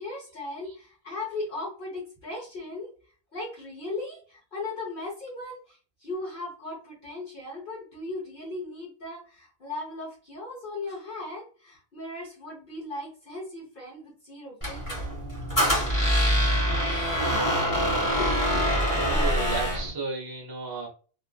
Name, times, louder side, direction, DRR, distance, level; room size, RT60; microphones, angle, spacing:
voice 1, 0.0-2.9 3.3-15.1 17.3-18.8, left 2 dB, 50° left, -4 dB, 1.1 m, -37 dB
Squeak, 14.6-19.9, equal, 20° left, 1.1 m, -24 dB
voice 2, 19.0-20.9, right 4 dB, 25° right, -2 dB, 0.6 m, -33 dB
3.0 x 2.5 x 2.2 m, 0.38 s
omnidirectional pair, 1.1 m